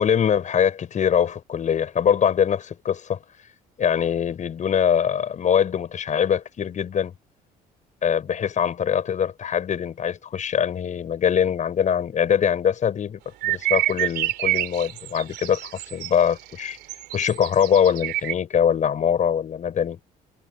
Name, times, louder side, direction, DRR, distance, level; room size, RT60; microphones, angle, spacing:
voice 1, 0.0-3.2 3.8-7.1 8.0-16.8 17.1-20.0, left 8 dB, 45° left, 7.4 m, -23 dB
sound 1, 13.4-18.3, right 16 dB, 80° right, 2.9 m, -27 dB
cardioid pair, 110°, 17 cm